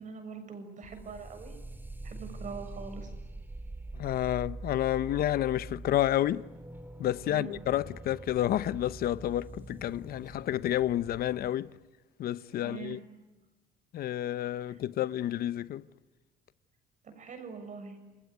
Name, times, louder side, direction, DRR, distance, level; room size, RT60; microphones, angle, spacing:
voice 1, 0.0-1.6 2.0-3.1 7.2-7.6 12.5-13.0 14.6-14.8 17.0-18.0, right 5 dB, 45° right, 6.9 m, -43 dB
sound 1, 0.8-11.5, right 2 dB, 10° right, 3.1 m, -44 dB
voice 2, 3.9-6.5 7.0-11.7 12.2-13.0 13.9-15.8, left 12 dB, 65° left, 0.9 m, -30 dB
29.0 x 20.5 x 9.8 m
cardioid pair, 110°, 17 cm